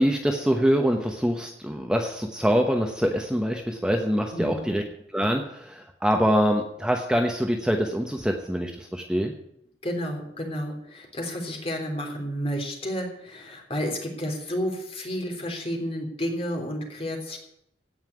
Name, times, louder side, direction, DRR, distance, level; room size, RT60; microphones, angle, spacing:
voice 1, 0.0-4.8 5.1-9.4, equal, 5° right, 3 dB, 1.0 m, -24 dB
voice 2, 4.3-4.7 9.8-17.4, equal, 35° left, 2 dB, 3.4 m, -31 dB
17.0 x 5.7 x 9.7 m, 0.78 s
head